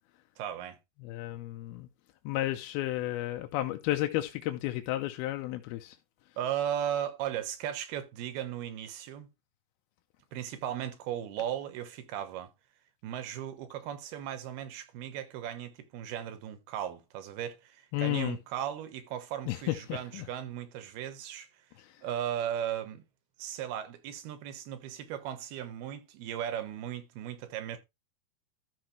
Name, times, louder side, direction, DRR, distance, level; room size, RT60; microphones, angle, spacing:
voice 1, 0.4-0.8 6.4-9.3 10.3-12.5 13.0-21.5 22.0-23.0 23.4-27.8, right 10 dB, 85° right, 3.2 m, -36 dB
voice 2, 1.0-1.9 2.2-6.0 17.9-18.4 19.5-20.3 21.8-22.0, left 15 dB, 90° left, 2.7 m, -32 dB
13.0 x 6.2 x 3.2 m
omnidirectional pair, 4.4 m